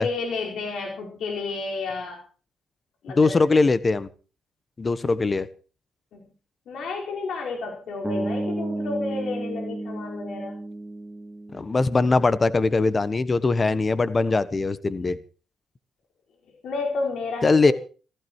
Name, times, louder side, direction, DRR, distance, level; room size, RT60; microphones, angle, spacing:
voice 1, 0.0-2.2 3.0-3.4 6.1-6.2 6.7-10.6 16.6-17.7, left 3 dB, 70° left, 1 dB, 4.9 m, -31 dB
voice 2, 3.2-4.1 4.8-5.5 11.5-15.2 17.4-17.7, left 3 dB, 30° left, 15 dB, 1.3 m, -21 dB
sound 1, 8.0-12.2, right 2 dB, 10° right, 2.8 m, -32 dB
15.5 x 15.0 x 4.6 m, 0.38 s
cardioid pair, 90°, 0 cm